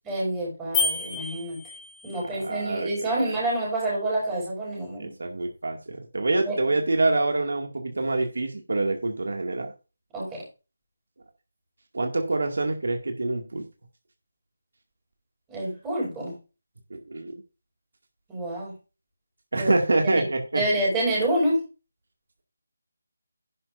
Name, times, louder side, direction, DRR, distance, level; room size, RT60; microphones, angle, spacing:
voice 1, 0.0-1.6 2.0-5.1 6.4-6.6 10.1-10.4 15.5-16.4 18.3-18.7 19.6-19.7 20.0-20.2 20.5-21.6, right 1 dB, 10° right, -6 dB, 5.7 m, -27 dB
sound 1, 0.7-2.3, left 4 dB, 10° left, 3.4 m, -29 dB
voice 2, 2.3-3.4 5.0-9.7 11.9-13.6 16.9-17.4 19.5-20.6, right 2 dB, 70° right, 3 dB, 2.2 m, -26 dB
11.0 x 11.0 x 2.6 m, 0.31 s
figure-of-eight pair, 170°, 0 cm